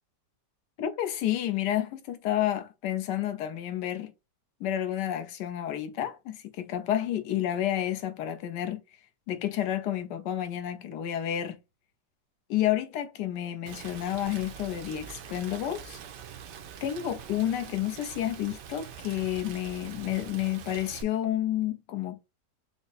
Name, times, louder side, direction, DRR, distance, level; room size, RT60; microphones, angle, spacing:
voice 1, 0.8-4.1 4.6-8.8 9.3-11.6 12.5-16.0 16.8-22.2, left 11 dB, 90° left, 1.3 m, -30 dB
Rain, 13.7-21.0, right 8 dB, 90° right, 1.3 m, -44 dB
5.2 x 2.0 x 4.0 m
omnidirectional pair, 1.8 m